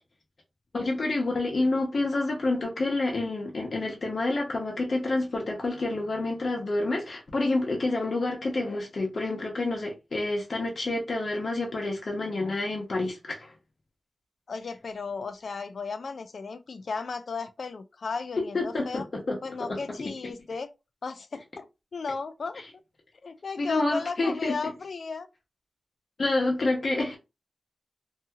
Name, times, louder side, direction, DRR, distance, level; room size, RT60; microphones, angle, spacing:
voice 1, 0.7-13.5 18.4-19.4 19.7-19.8 23.6-24.6 26.2-27.2, left 2 dB, 60° left, 0.9 m, -28 dB
voice 2, 14.5-19.1 19.4-20.7 21.0-22.6 23.2-25.3, left 4 dB, 75° left, 0.4 m, -35 dB
2.7 x 2.3 x 2.7 m
wide cardioid pair, 105°, 0 cm